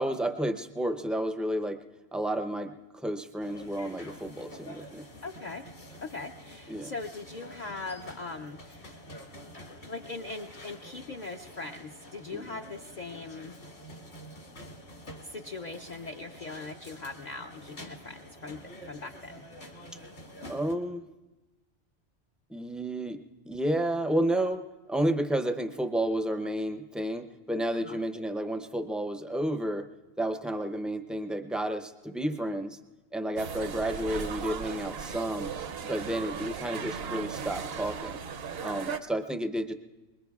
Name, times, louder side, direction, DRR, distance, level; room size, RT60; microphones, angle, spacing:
voice 1, 0.0-1.8 2.1-5.1 6.7-6.9 12.3-12.6 20.5-21.0 22.5-29.9 30.2-32.8 33.1-35.5 35.8-38.2 38.6-39.7, right 1 dB, ahead, 6 dB, 0.4 m, -31 dB
sound 1, 3.4-20.7, left 1 dB, 65° left, 2.2 m, -48 dB
voice 2, 5.2-5.6 6.0-8.9 9.9-13.6 15.2-18.6 18.9-19.4 27.7-28.0 38.9-39.0, left 3 dB, 50° left, 3 dB, 0.6 m, -40 dB
sound 2, 33.4-39.0, right 6 dB, 65° right, 0.9 m, -37 dB
24.5 x 22.0 x 2.3 m, 1.1 s
omnidirectional pair, 1.2 m